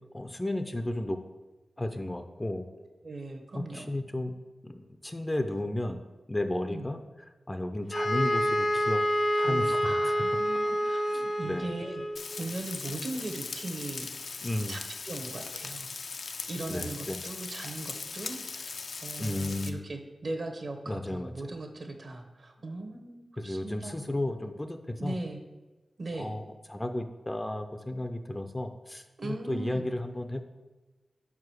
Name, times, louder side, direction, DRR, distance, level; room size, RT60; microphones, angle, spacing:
voice 1, 0.1-1.2 1.8-2.7 3.5-4.3 4.6-6.0 6.3-7.0 7.5-9.0 9.4-10.1 11.1-11.6 14.4-14.8 16.7-17.2 19.2-19.8 20.9-21.5 23.4-25.2 26.2-26.4 26.7-30.4, left 1 dB, 15° left, 7 dB, 0.5 m, -33 dB
voice 2, 2.8-3.9 6.7-6.9 9.4-12.0 12.4-14.4 14.7-15.9 16.2-24.2 25.0-25.4 26.0-26.3 29.2-29.9, right 2 dB, 50° right, 4 dB, 1.0 m, -39 dB
sound 1, 7.9-12.3, equal, 90° left, 1.8 m, -28 dB
Frying (food), 12.2-19.7, left 4 dB, 70° left, 0.5 m, -39 dB
5.1 x 4.8 x 6.2 m, 1.2 s
wide cardioid pair, 95°, 0 cm